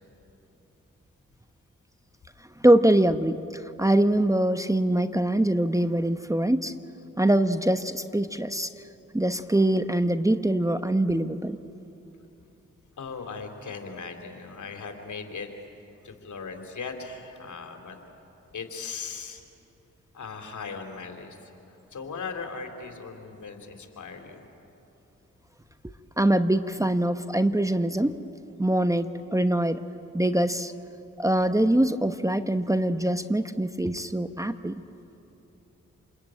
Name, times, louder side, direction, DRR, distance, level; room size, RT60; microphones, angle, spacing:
voice 1, 2.6-6.7 7.2-8.7 9.1-11.6 26.2-28.2 28.6-29.8 30.1-30.7 31.2-34.8, right 1 dB, 10° right, 10 dB, 1.1 m, -23 dB
voice 2, 13.0-15.5 16.0-18.0 18.5-19.4 20.1-21.5 21.9-24.4, left 5 dB, 65° left, 4 dB, 3.2 m, -38 dB
27.5 x 21.5 x 9.0 m, 2.9 s
supercardioid pair, 40°, 32 cm